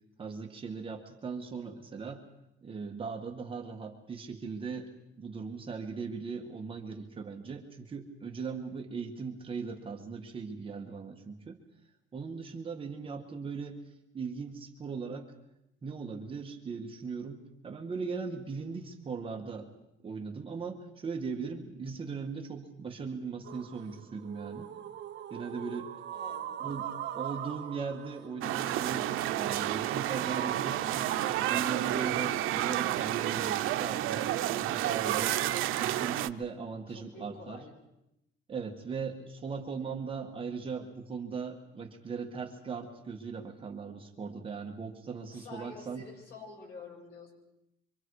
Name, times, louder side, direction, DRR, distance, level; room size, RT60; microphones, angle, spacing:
voice 1, 0.2-2.2 2.6-4.9 5.2-11.6 12.1-13.8 14.1-15.3 15.8-19.7 20.0-24.7 25.3-25.9 26.6-35.4 35.8-37.6 38.5-46.0, right 5 dB, 25° right, 2 dB, 1.8 m, -39 dB
voice 2, 13.0-13.3 26.1-26.7 36.9-37.7 45.3-47.3, left 3 dB, 50° left, -1 dB, 7.4 m, -48 dB
sound 1, 23.4-31.9, right 10 dB, 60° right, 1.6 m, -41 dB
sound 2, 28.4-36.3, right 13 dB, 85° right, 0.8 m, -30 dB
25.5 x 25.5 x 4.9 m, 0.85 s
cardioid pair, 170°, 21 cm